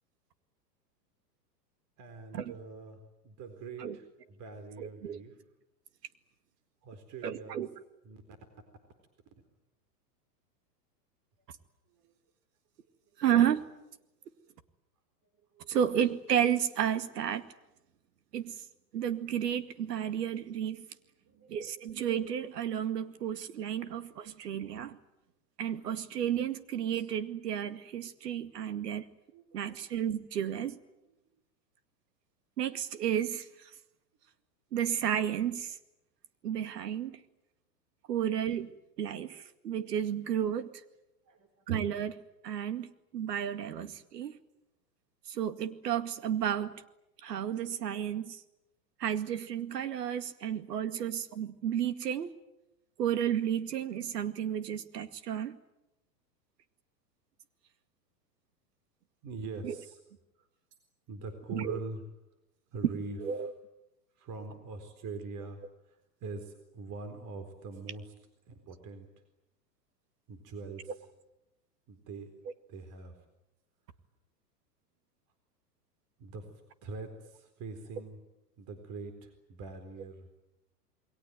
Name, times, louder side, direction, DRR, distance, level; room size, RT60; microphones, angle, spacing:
voice 1, 2.0-5.4 6.8-7.6 8.0-8.2 11.9-12.1 15.5-15.8 21.2-21.8 29.3-29.7 41.2-41.6 59.2-60.0 60.4-60.5 61.1-62.0 62.7-63.5 64.2-68.1 68.5-69.1 70.3-71.1 71.9-72.3 72.7-73.2 76.2-76.5 76.8-78.2 78.6-80.3, right 3 dB, 35° right, 8 dB, 4.2 m, -44 dB
voice 2, 4.8-5.2 7.2-7.7 13.2-13.7 15.7-17.4 18.3-18.6 18.9-20.8 21.5-25.0 25.6-29.1 29.5-30.8 32.6-33.5 34.7-35.8 36.4-37.2 38.1-38.7 39.0-40.7 41.7-44.3 45.3-46.7 47.2-48.4 49.0-52.3 53.0-55.6 59.6-59.8 61.5-61.8 63.2-63.5, right 9 dB, 70° right, 10 dB, 2.2 m, -32 dB
28.0 x 22.0 x 9.3 m, 0.92 s
hypercardioid pair, 110°, 49 cm